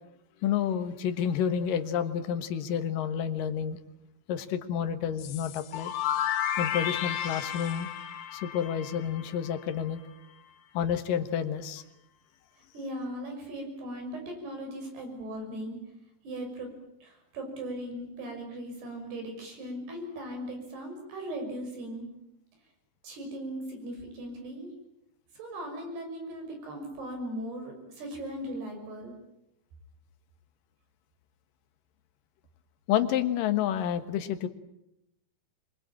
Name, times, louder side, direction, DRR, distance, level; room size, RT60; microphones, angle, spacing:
voice 1, 0.4-3.8 4.3-5.9 6.6-7.9 8.3-10.0 10.7-11.8 32.9-34.5, left 9 dB, 60° left, 9 dB, 2.7 m, -29 dB
sound 1, 5.2-9.9, left 10 dB, 80° left, 3.6 m, -33 dB
voice 2, 12.7-15.8 16.2-16.7 17.0-22.1 23.0-24.7 25.3-29.1, right 1 dB, 65° right, 3 dB, 8.0 m, -38 dB
25.5 x 22.5 x 8.9 m, 0.83 s
omnidirectional pair, 5.1 m